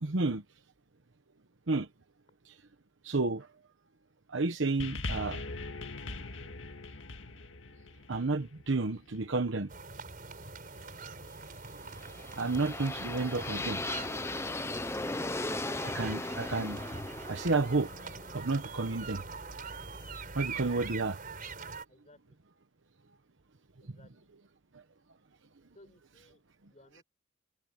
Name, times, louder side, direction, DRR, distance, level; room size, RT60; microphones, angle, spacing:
voice 1, 0.0-0.4 1.7-1.9 2.5-2.6 3.0-3.5 4.3-5.4 8.1-9.7 12.4-13.8 15.8-16.8 17.3-17.9 18.3-19.2 20.3-21.2, right 3 dB, 75° right, 1.1 m, -31 dB
sound 1, 4.8-9.3 10.2-10.3, left 2 dB, 80° left, 2.0 m, -41 dB
sound 2, 9.7-21.9, right 4 dB, 45° right, 5.0 m, -43 dB
sound 3, 11.8-19.8, left 2 dB, 15° left, 0.7 m, -38 dB
voice 2, 21.9-22.4 23.8-24.3 25.7-26.4 26.7-27.0, left 1 dB, 35° left, 6.4 m, -59 dB
head